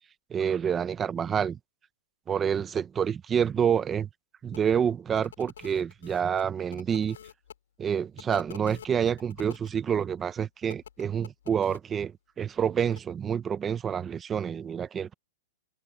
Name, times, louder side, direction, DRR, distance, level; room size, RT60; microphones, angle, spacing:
voice 1, 0.3-1.6 2.3-4.1 4.4-7.2 7.8-15.1, right 8 dB, 15° right, 0.9 m, -28 dB
sound 1, 4.5-4.6 5.1-7.5 8.2-9.7 10.7-11.8 12.8-13.0, left 9 dB, 90° left, 3.6 m, -48 dB
hypercardioid pair, 165°, 0 cm